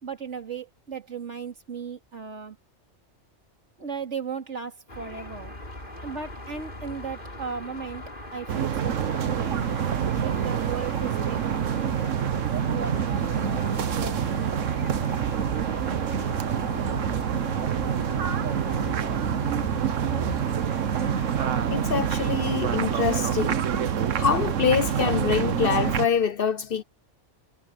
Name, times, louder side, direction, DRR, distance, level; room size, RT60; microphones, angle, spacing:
voice 1, 0.0-2.6 3.8-5.5 6.0-8.0 8.3-9.6 10.2-11.9 12.7-14.6, right 6 dB, 70° right, 2.9 m, -36 dB
sound 1, 4.9-22.9, left 1 dB, 40° left, 5.1 m, -39 dB
sound 2, 8.5-26.1, right 8 dB, 90° right, 1.3 m, -26 dB
voice 2, 21.7-23.6 24.2-26.8, left 7 dB, 55° left, 0.7 m, -25 dB
omnidirectional pair, 1.3 m